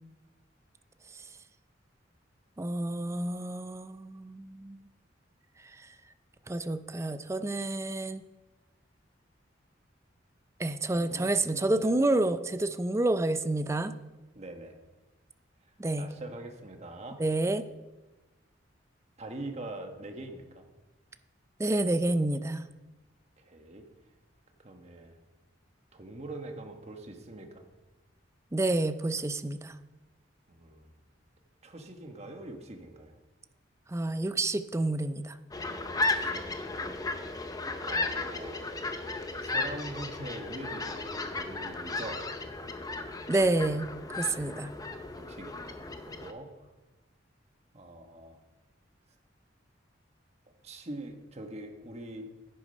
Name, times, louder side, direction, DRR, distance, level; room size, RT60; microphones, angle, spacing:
voice 1, 2.6-4.8 6.5-8.2 10.6-13.9 15.8-16.1 17.2-17.6 21.6-22.7 28.5-29.7 33.9-35.3 43.3-44.7, right 2 dB, 15° right, 11 dB, 0.4 m, -29 dB
voice 2, 10.9-12.1 14.3-14.8 15.9-17.2 19.2-20.6 23.4-23.8 24.6-25.2 25.9-27.6 30.5-31.0 31.6-33.1 35.9-36.5 37.8-38.7 39.4-42.2 44.6-46.5 47.7-48.4 50.6-52.3, right 2 dB, 35° right, 4 dB, 1.2 m, -43 dB
sound 1, 35.5-46.3, left 3 dB, 20° left, 0.7 m, -35 dB
10.0 x 8.4 x 5.4 m, 1.1 s
head